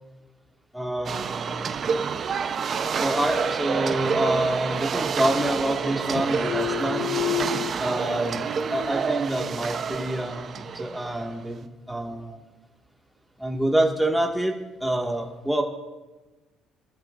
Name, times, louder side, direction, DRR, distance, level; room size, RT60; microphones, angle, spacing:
voice 1, 0.7-1.7 2.9-7.1 7.8-8.4 8.7-12.4 13.4-14.6 14.8-15.6, right 1 dB, 5° right, 0 dB, 2.0 m, -27 dB
sound 1, 1.1-11.5, right 6 dB, 45° right, 0.8 m, -28 dB
sound 2, 4.9-5.8 6.1-7.7, left 13 dB, 75° left, 0.4 m, -31 dB
sound 3, 6.0-11.3, right 6 dB, 70° right, 2.7 m, -40 dB
23.5 x 13.5 x 2.6 m, 1.2 s
cardioid pair, 90°, 0 cm